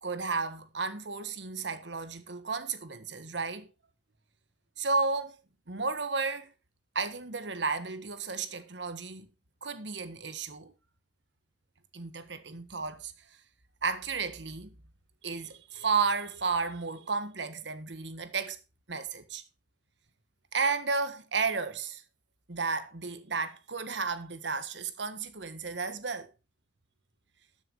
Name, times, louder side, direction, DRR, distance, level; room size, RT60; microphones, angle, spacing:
voice 1, 0.0-3.7 4.8-5.4 5.7-6.5 6.9-9.3 9.6-10.7 11.9-13.1 13.8-14.7 15.2-18.6 18.9-19.4 20.5-22.0 22.5-26.3, right 4 dB, 75° right, 1.5 m, -33 dB
13.0 x 7.2 x 4.7 m
head